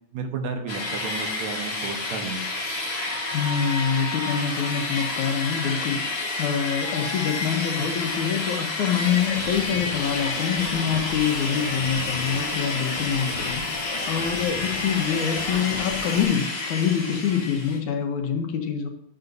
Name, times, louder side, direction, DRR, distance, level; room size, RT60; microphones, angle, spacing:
voice 1, 0.1-2.5, right 4 dB, 75° right, 5 dB, 2.3 m, -32 dB
sound 1, 0.7-17.8, left 3 dB, 35° left, 1.0 m, -30 dB
voice 2, 3.3-18.9, left 7 dB, 85° left, 4 dB, 2.5 m, -26 dB
sound 2, 9.1-16.3, left 4 dB, 60° left, 1.3 m, -36 dB
11.5 x 6.9 x 2.7 m, 0.71 s
omnidirectional pair, 3.3 m